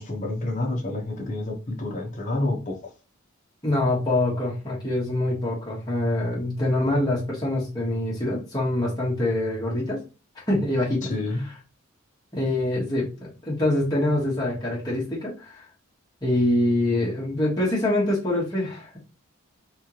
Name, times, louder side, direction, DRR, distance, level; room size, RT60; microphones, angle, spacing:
voice 1, 0.0-2.9 11.0-11.5, left 2 dB, 35° left, 1.2 m, -29 dB
voice 2, 3.6-10.0 10.5-11.1 12.3-15.6 16.2-19.0, left 1 dB, 20° left, 1.5 m, -25 dB
3.6 x 3.4 x 3.0 m
head